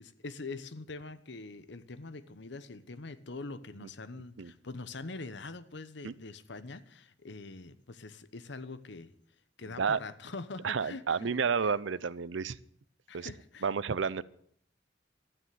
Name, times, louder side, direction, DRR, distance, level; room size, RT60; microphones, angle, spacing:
voice 1, 0.0-9.1 9.6-11.7 13.1-13.7, left 3 dB, 70° left, 14 dB, 1.0 m, -44 dB
voice 2, 10.6-12.6 13.1-13.3 13.6-14.2, right 5 dB, 85° right, 19 dB, 0.6 m, -30 dB
13.0 x 9.2 x 9.3 m, 0.66 s
head